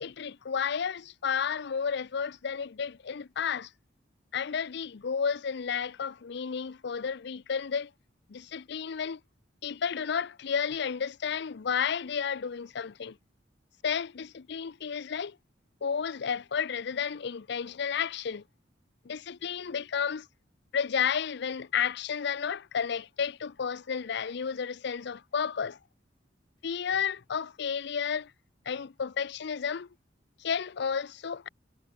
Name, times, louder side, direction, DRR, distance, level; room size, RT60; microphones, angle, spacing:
voice 1, 0.0-3.7 4.3-7.9 8.3-9.2 9.6-13.2 13.8-15.4 15.8-18.4 19.0-20.3 20.7-25.8 26.6-28.3 28.7-29.9 30.4-31.5, left 7 dB, 65° left, 0.5 m, -32 dB
head